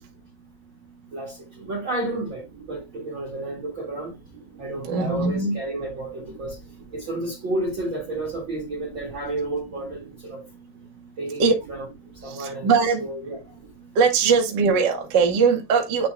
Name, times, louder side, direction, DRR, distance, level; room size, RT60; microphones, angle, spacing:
voice 1, 1.1-4.2 4.6-6.6 6.9-10.4 11.2-11.8 12.2-12.7 13.0-13.5, right 2 dB, 45° right, 1.7 m, -31 dB
voice 2, 4.8-5.6 11.4-11.8 12.2-13.0 13.9-16.1, right 5 dB, 75° right, 1.0 m, -21 dB
8.5 x 4.3 x 3.2 m
omnidirectional pair, 4.7 m